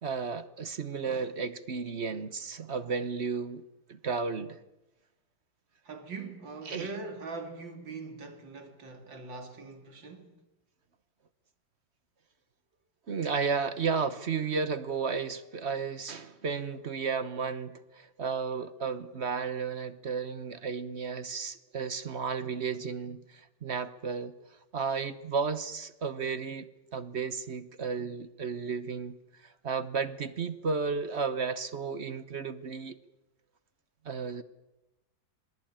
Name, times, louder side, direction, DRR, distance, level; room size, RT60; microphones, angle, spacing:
voice 1, 0.0-3.6 3.9-4.6 6.6-6.9 13.1-24.3 24.7-33.0 34.0-34.4, right 5 dB, 45° right, 1.1 m, -33 dB
voice 2, 5.8-10.4, right 3 dB, 90° right, 3.5 m, -42 dB
27.0 x 19.5 x 8.9 m
omnidirectional pair, 2.0 m